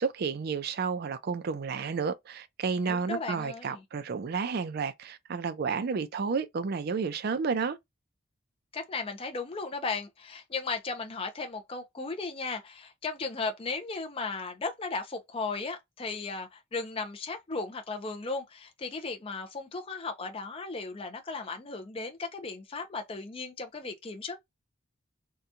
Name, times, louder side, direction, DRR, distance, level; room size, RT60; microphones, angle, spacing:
voice 1, 0.0-7.8, right 5 dB, 50° right, 0.4 m, -31 dB
voice 2, 2.9-3.8 8.7-24.4, left 4 dB, 30° left, 0.5 m, -36 dB
2.8 x 2.2 x 2.4 m
head